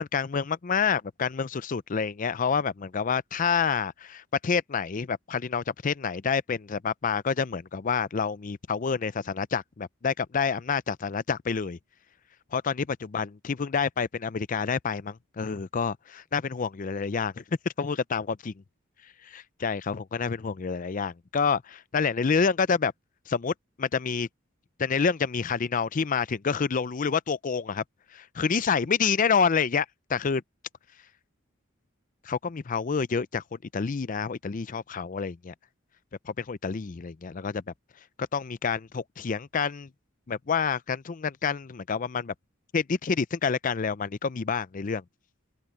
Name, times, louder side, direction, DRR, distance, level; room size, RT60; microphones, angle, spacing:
voice 1, 0.0-11.8 12.5-17.4 17.8-18.5 19.3-22.9 23.3-23.5 23.8-24.3 24.8-27.8 28.1-30.4 32.3-35.5 36.3-37.6 38.3-39.9 40.3-42.3 42.7-45.0, left 5 dB, 40° left, 0.5 m, -28 dB
open air
head